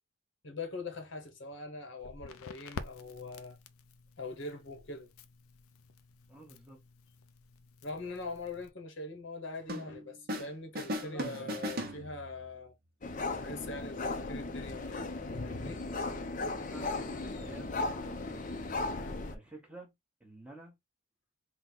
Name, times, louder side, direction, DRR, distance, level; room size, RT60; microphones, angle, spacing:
voice 1, 0.4-3.6 4.2-5.1 7.8-12.7 13.3-15.9, left 3 dB, 55° left, 1.0 m, -42 dB
Crackle, 2.0-8.7, left 4 dB, 85° left, 0.5 m, -50 dB
voice 2, 6.3-6.8 16.5-18.4 19.3-19.9 20.2-20.7, right 2 dB, 5° right, 1.0 m, -51 dB
sound 1, 9.7-10.5 10.7-12.5, equal, 45° right, 0.9 m, -38 dB
sound 2, 13.0-19.3, left 3 dB, 35° left, 0.6 m, -36 dB
3.8 x 2.2 x 4.4 m
head